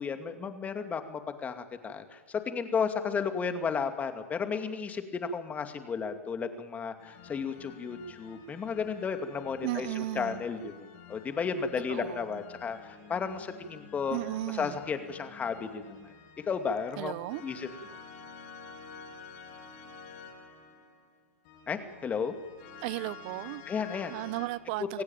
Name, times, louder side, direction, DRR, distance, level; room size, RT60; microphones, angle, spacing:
voice 1, 0.0-14.2 14.5-16.1 16.5-17.1 17.4-17.7 21.7-22.3 23.7-24.1 24.9-25.0, left 6 dB, 20° left, 2.5 m, -33 dB
sound 1, 7.0-24.5, left 5 dB, 50° left, 7.7 m, -50 dB
voice 2, 9.6-10.5 11.9-12.3 14.1-14.8 17.0-17.4 22.8-23.6 24.1-25.0, right 18 dB, 45° right, 0.7 m, -35 dB
26.0 x 16.5 x 9.1 m
hypercardioid pair, 105°, 8 cm